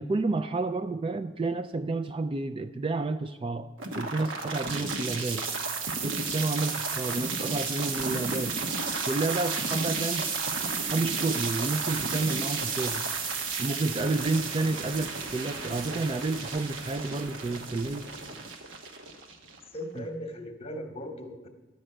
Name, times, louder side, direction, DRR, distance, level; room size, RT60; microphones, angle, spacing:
voice 1, 0.0-5.5 6.0-8.6 9.1-10.3 10.9-13.0 13.6-18.1 20.0-20.1, right 3 dB, 25° right, 10 dB, 0.3 m, -30 dB
sound 1, 3.8-19.8, right 4 dB, 85° right, 1.1 m, -32 dB
voice 2, 19.7-21.5, equal, 30° left, 5 dB, 1.0 m, -38 dB
11.5 x 5.3 x 7.7 m, 1.2 s
head